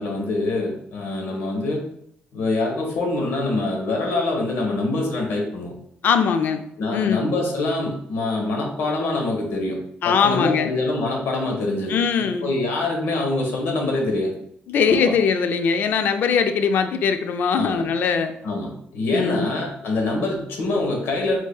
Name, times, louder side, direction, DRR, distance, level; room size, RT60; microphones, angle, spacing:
voice 1, 0.0-1.8 2.3-5.7 6.8-9.8 10.0-14.3 14.9-15.1 17.6-17.8 18.4-21.4, left 2 dB, 80° left, 1 dB, 1.3 m, -25 dB
voice 2, 6.0-6.6 6.9-7.3 10.0-10.7 11.9-12.5 14.7-18.3 19.1-19.5, left 6 dB, 55° left, 8 dB, 0.4 m, -21 dB
4.9 x 3.9 x 2.3 m, 0.73 s
cardioid pair, 170°, 4 cm